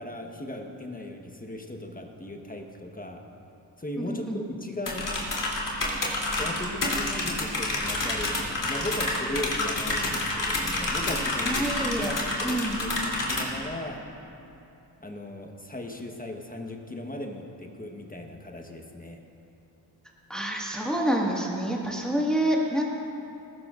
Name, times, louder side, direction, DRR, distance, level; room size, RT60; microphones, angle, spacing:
voice 1, 0.0-3.2 3.8-5.2 6.3-14.1 15.0-19.2, left 1 dB, 20° left, 2 dB, 1.2 m, -37 dB
voice 2, 4.0-4.4 11.4-12.8 20.3-22.8, right 1 dB, ahead, -3 dB, 1.8 m, -28 dB
sound 1, 4.9-13.4, left 2 dB, 40° left, 3.2 m, -29 dB
18.5 x 15.0 x 2.5 m, 2.9 s
cardioid pair, 70°, 47 cm